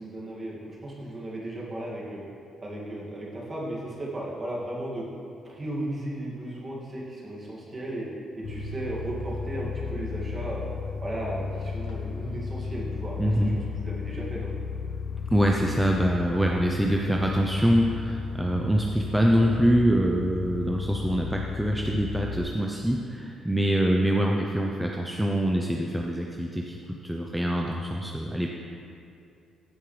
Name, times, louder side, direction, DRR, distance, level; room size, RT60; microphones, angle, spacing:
voice 1, 0.0-2.2 2.6-5.0 5.4-8.1 8.3-10.6 11.0-14.5, right 1 dB, 30° right, -4 dB, 2.2 m, -35 dB
sound 1, 8.4-22.4, left 4 dB, 85° left, 1.2 m, -34 dB
voice 2, 13.2-13.6 15.3-26.8 27.0-28.5, equal, 5° right, 0 dB, 0.6 m, -24 dB
15.0 x 5.4 x 3.3 m, 2.6 s
cardioid pair, 90°, 0 cm